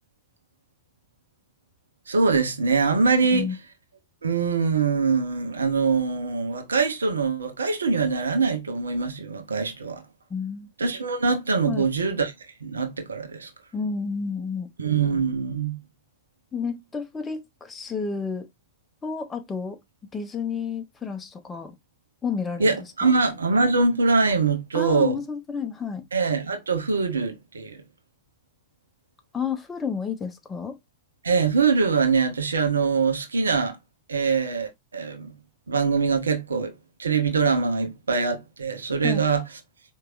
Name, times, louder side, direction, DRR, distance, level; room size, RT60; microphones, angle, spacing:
voice 1, 2.1-3.5 4.2-10.0 10.8-12.3 12.6-13.5 14.8-15.8 22.6-25.2 26.1-27.8 31.2-33.8 34.1-35.3 35.7-36.7 37.0-39.4, right 4 dB, 75° right, 0.8 m, -23 dB
voice 2, 10.3-10.7 11.7-11.9 13.7-14.7 16.5-18.5 19.0-19.8 20.1-21.8 22.2-23.1 24.7-26.1 29.3-30.8 39.0-39.2, left 5 dB, 15° left, 0.8 m, -31 dB
4.5 x 3.1 x 2.4 m
figure-of-eight pair, 90°, 0 cm